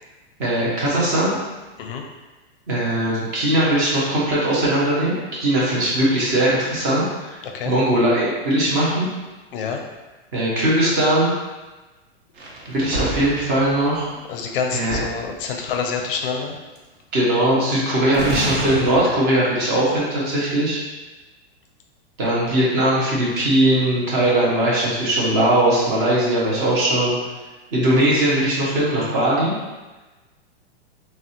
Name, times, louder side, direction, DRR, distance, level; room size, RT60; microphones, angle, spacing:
voice 1, 0.4-1.4 2.7-7.4 7.7-9.1 10.3-11.3 12.7-14.1 14.7-15.0 17.1-20.8 22.2-27.2 27.7-29.5, right 1 dB, 15° right, -6 dB, 0.4 m, -20 dB
sound 1, 12.4-14.1 14.4-14.5 14.7-15.7 16.8-16.9 18.1-19.0, right 1 dB, 60° right, 0.7 m, -28 dB
voice 2, 14.3-16.6, left 6 dB, 55° left, 3 dB, 0.5 m, -27 dB
3.5 x 2.0 x 2.6 m, 1.2 s
supercardioid pair, 170°, 33 cm